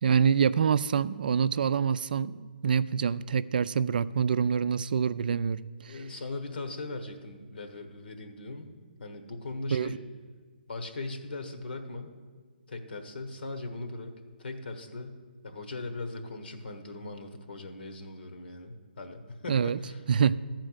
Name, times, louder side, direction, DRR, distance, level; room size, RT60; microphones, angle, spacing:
voice 1, 0.0-5.9 9.7-10.0 19.5-19.8 20.1-20.4, right 7 dB, 60° right, 15 dB, 0.4 m, -26 dB
voice 2, 5.9-10.0 10.7-12.1 12.7-14.1 14.4-15.2 15.4-20.0, left 2 dB, 75° left, 7 dB, 1.2 m, -39 dB
13.0 x 4.5 x 7.9 m, 1.5 s
hypercardioid pair, 145°, 6 cm